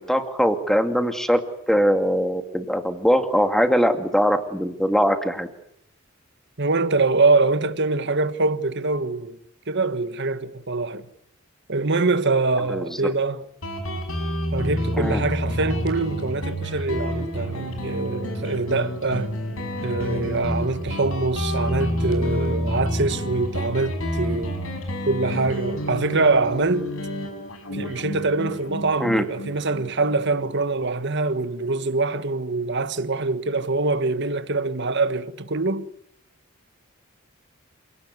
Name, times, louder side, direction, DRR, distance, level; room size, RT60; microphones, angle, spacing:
voice 1, 0.1-1.4 1.7-5.5 12.7-13.0 15.0-15.2 29.0-29.2, equal, ahead, 2.3 m, -21 dB
voice 2, 6.6-9.4 9.7-11.1 11.7-13.4 14.5-19.3 19.8-24.6 25.1-26.9 27.7-35.8, right 3 dB, 55° right, 1.5 m, -24 dB
Guitar, 13.6-30.8, equal, 85° left, 6.3 m, -29 dB
28.0 x 18.0 x 9.7 m
head